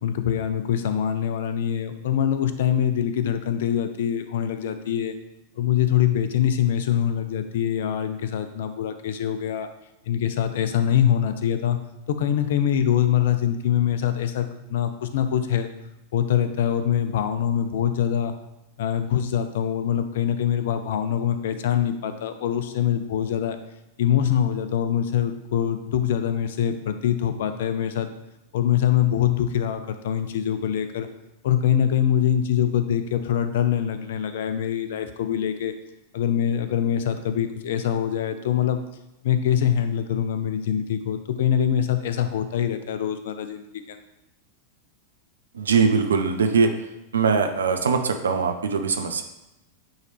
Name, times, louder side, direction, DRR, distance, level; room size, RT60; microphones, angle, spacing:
voice 1, 0.0-5.1 5.6-9.7 10.1-11.8 12.1-15.7 16.1-18.3 18.8-23.6 24.0-28.1 28.5-31.1 31.4-35.7 36.1-38.8 39.2-44.0, left 9 dB, 55° left, 10 dB, 0.5 m, -24 dB
voice 2, 45.5-46.7 47.1-49.2, right 5 dB, 70° right, 6 dB, 0.6 m, -21 dB
8.9 x 3.1 x 3.3 m, 0.91 s
figure-of-eight pair, 90°, 0 cm